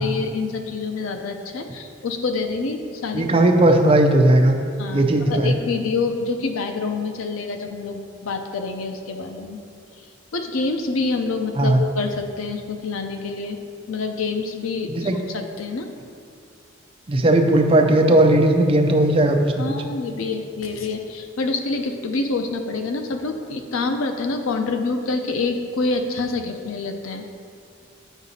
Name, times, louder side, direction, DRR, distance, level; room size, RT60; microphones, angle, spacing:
voice 1, 0.0-3.3 4.8-9.6 10.3-13.6 13.9-15.9 19.6-27.3, left 3 dB, 85° left, 5 dB, 0.6 m, -27 dB
voice 2, 3.1-4.5 4.9-5.5 11.6-11.8 14.9-15.2 17.1-19.6, right 1 dB, 25° right, 4 dB, 0.4 m, -16 dB
9.1 x 4.8 x 2.7 m, 2.3 s
head